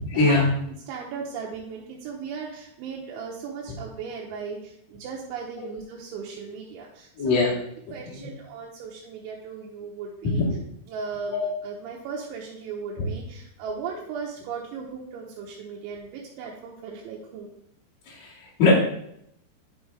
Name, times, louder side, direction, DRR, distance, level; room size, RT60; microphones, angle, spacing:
voice 1, 0.1-0.5 5.6-5.7 7.2-7.5 8.1-8.3 10.4-10.6 11.3-11.5 13.0-13.1 18.1-18.7, left 3 dB, 45° left, -8 dB, 2.6 m, -22 dB
voice 2, 0.9-7.5 7.9-10.4 10.9-17.5, right 5 dB, 80° right, -3 dB, 3.3 m, -37 dB
11.0 x 5.4 x 3.4 m, 0.73 s
omnidirectional pair, 5.4 m